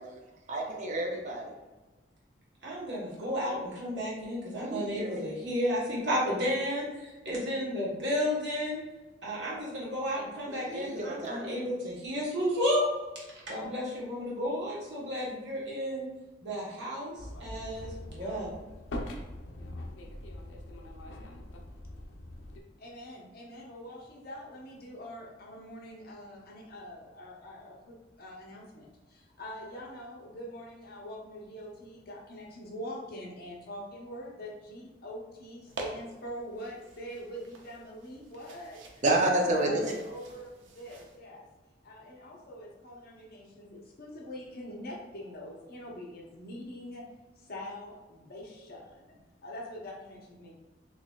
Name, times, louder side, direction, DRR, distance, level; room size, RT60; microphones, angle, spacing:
voice 1, 0.5-1.5 4.6-5.3 10.4-11.6 39.0-39.9, right 1 dB, 40° right, 0 dB, 0.5 m, -30 dB
voice 2, 2.6-8.8 9.2-12.9 13.5-16.1 16.4-18.5, equal, 70° right, -5 dB, 1.2 m, -32 dB
sound 1, 17.2-22.6, left 1 dB, 85° left, 0.5 m, -42 dB
voice 3, 22.8-39.0 39.5-41.5 41.8-47.0 47.4-50.5, equal, 55° left, -3 dB, 0.8 m, -44 dB
sound 2, 35.7-41.2, right 2 dB, 85° right, 0.6 m, -47 dB
4.0 x 2.9 x 2.3 m, 1.2 s
head